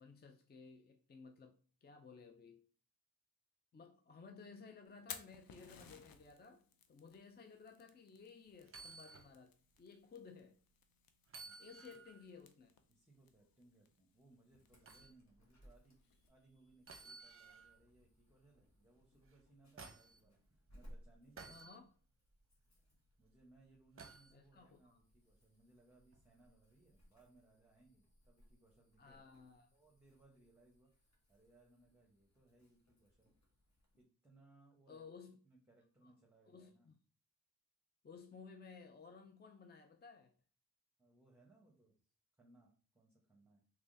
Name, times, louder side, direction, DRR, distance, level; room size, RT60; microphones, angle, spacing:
voice 1, 0.0-2.7 3.7-10.6 11.6-12.7 21.5-21.9 24.3-25.0 29.0-29.7 34.9-35.4 36.0-36.1 36.4-37.0 38.0-40.3, left 5 dB, 30° left, 0.5 m, -57 dB
Fire, 4.9-16.3, left 7 dB, 75° left, 0.6 m, -59 dB
sound 1, 8.6-9.3 9.8-9.9 11.3-12.3 14.9-15.1 16.9-17.8 19.3-20.2 21.4-21.8 24.0-24.3 26.1-26.3, right 4 dB, 40° right, 0.7 m, -55 dB
voice 2, 12.9-21.7 23.2-29.3 29.7-33.3 34.0-35.0 35.4-36.9 41.0-42.0 42.4-43.6, right 2 dB, 5° right, 1.0 m, -68 dB
Insect / Alarm, 14.6-34.0, equal, 50° left, 1.3 m, -66 dB
3.4 x 3.3 x 2.7 m
cardioid pair, 55°, 36 cm